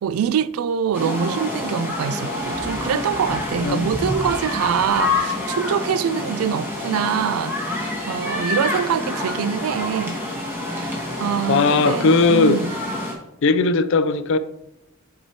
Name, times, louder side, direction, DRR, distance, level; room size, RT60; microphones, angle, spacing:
voice 1, 0.0-10.2 10.7-12.7, right 8 dB, 85° right, 0.3 m, -24 dB
sound 1, 0.9-13.1, left 2 dB, 10° right, 1.4 m, -27 dB
voice 2, 3.6-3.9 11.5-12.6 13.4-14.4, left 4 dB, 60° left, 0.4 m, -18 dB
10.0 x 4.7 x 2.9 m
head